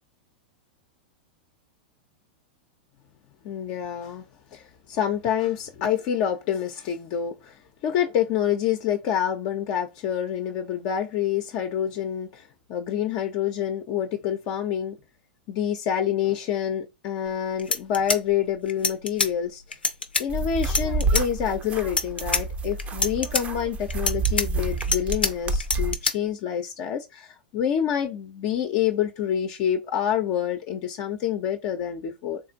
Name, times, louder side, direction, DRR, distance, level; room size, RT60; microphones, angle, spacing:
voice 1, 3.4-4.2 4.5-12.4 12.7-15.0 15.5-19.6 20.2-32.4, left 9 dB, 45° left, 0.6 m, -27 dB
sound 1, 17.3-17.4 17.6-19.3 19.7-20.2 20.6-21.2 21.8-22.4 22.8-23.4 23.9-25.3 25.6-26.1, left 4 dB, 90° left, 0.6 m, -25 dB
sound 2, 20.3-26.0, right 3 dB, 25° right, 0.6 m, -28 dB
3.8 x 2.5 x 2.5 m
hypercardioid pair, 100°, 5 cm